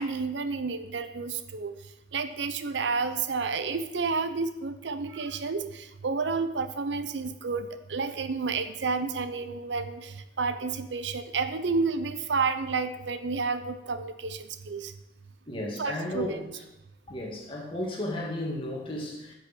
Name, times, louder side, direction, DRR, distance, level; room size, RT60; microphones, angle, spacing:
voice 1, 0.0-1.7 2.1-14.9 15.8-16.4, right 4 dB, 75° right, 10 dB, 0.7 m, -30 dB
voice 2, 15.5-16.6 17.1-19.4, left 1 dB, 30° left, -2 dB, 2.1 m, -34 dB
10.0 x 6.2 x 6.1 m, 0.92 s
head